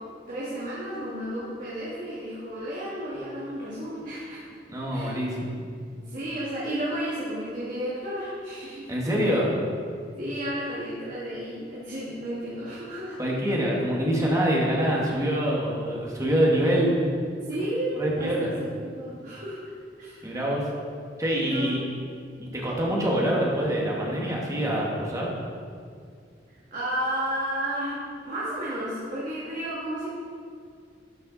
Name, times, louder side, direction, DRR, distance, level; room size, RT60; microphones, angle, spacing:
voice 1, 0.3-4.4 4.9-5.2 6.0-8.9 10.2-13.2 17.4-19.6 20.0-20.4 21.3-21.8 26.5-30.1, right 1 dB, 50° right, -8 dB, 1.8 m, -32 dB
voice 2, 4.7-5.6 8.9-9.5 13.2-17.0 18.0-18.5 20.2-20.7 21.2-21.8 22.4-25.3, equal, 20° right, -3 dB, 1.7 m, -25 dB
12.0 x 5.7 x 4.0 m, 2.2 s
head